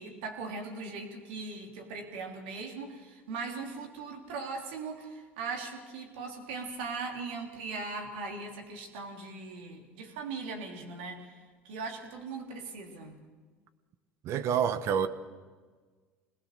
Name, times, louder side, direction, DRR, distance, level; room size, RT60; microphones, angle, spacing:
voice 1, 0.0-11.3 11.6-13.2, right 4 dB, 75° right, 3.3 m, -39 dB
voice 2, 14.2-15.1, right 8 dB, 55° right, 1.2 m, -27 dB
26.5 x 19.5 x 6.7 m
hypercardioid pair, 75°, 6 cm